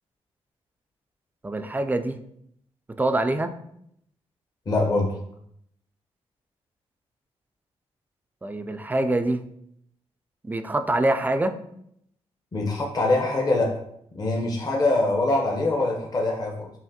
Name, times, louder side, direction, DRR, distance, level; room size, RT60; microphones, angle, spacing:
voice 1, 1.4-2.2 3.0-3.5 8.4-9.4 10.4-11.6, right 2 dB, 15° right, 8 dB, 0.3 m, -25 dB
voice 2, 4.7-5.2 12.5-13.7 14.1-16.7, left 2 dB, 35° left, -1 dB, 0.8 m, -23 dB
5.6 x 2.5 x 2.7 m, 0.72 s
cardioid pair, 95°, 11 cm